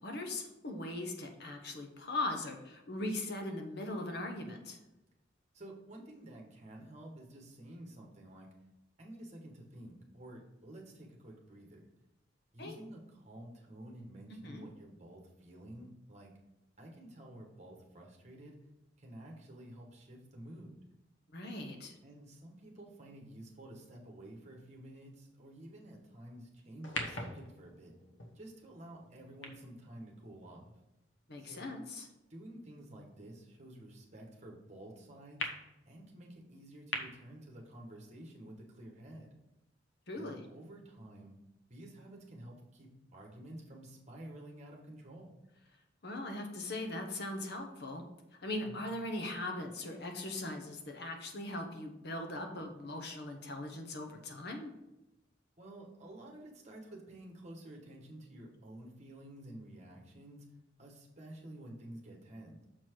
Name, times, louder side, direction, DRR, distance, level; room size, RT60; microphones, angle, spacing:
voice 1, 0.0-4.8 12.6-12.8 14.4-14.7 21.3-21.9 31.3-32.1 40.1-40.5 46.0-48.0 48.4-54.7, left 2 dB, 60° left, 3 dB, 1.1 m, -40 dB
voice 2, 5.5-8.5 9.0-11.8 12.5-16.4 16.8-18.5 19.0-20.8 22.0-27.9 28.3-30.7 31.4-31.7 32.3-35.5 35.9-39.3 40.2-41.4 41.7-45.3 48.6-48.8 55.6-60.4 60.8-62.7, right 1 dB, 35° right, 0 dB, 1.5 m, -51 dB
sound 1, 26.8-31.3 31.9-32.0 35.4-35.5 36.9-37.0, left 2 dB, 80° left, 1.1 m, -43 dB
6.6 x 4.5 x 4.6 m, 0.94 s
head